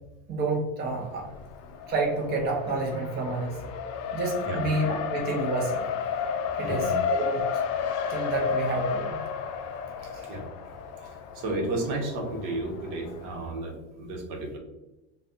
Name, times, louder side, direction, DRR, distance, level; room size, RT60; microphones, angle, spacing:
voice 1, 0.3-1.3 1.9-3.6 4.1-5.8 6.5-7.5 8.1-9.2 10.1-10.3, right 3 dB, 25° right, 0 dB, 0.6 m, -29 dB
Race car auto racing, 0.8-13.5, left 7 dB, 45° left, 0.4 m, -32 dB
voice 2, 6.6-7.0 10.0-10.4 11.0-14.6, right 2 dB, 65° right, 1 dB, 1.0 m, -33 dB
4.0 x 2.3 x 2.6 m, 1.0 s
supercardioid pair, 115°, 37 cm